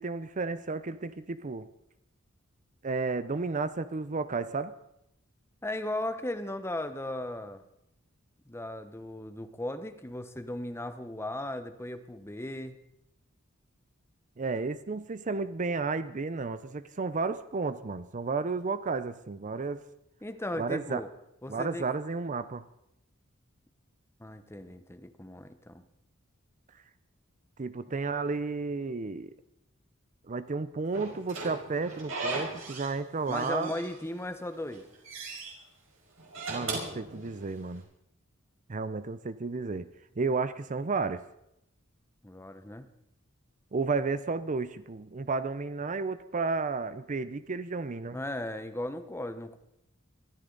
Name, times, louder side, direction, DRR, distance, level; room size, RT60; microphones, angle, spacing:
voice 1, 0.0-1.7 2.8-4.7 14.4-19.8 20.6-21.0 21.5-22.6 27.6-29.3 30.3-33.7 36.5-37.8 38.7-39.9 40.2-41.2 43.7-48.2, right 4 dB, 40° right, 13 dB, 0.6 m, -32 dB
voice 2, 5.6-7.6 8.5-12.8 20.2-21.1 21.4-21.9 24.2-25.8 33.3-34.9 42.2-42.8 48.1-49.6, left 1 dB, 15° left, 10 dB, 1.0 m, -36 dB
Slam / Squeak, 30.9-33.0 33.3-34.2 34.6-35.5 36.2-37.7, right 3 dB, 70° right, 5.4 m, -37 dB
23.0 x 13.5 x 4.0 m, 0.81 s
head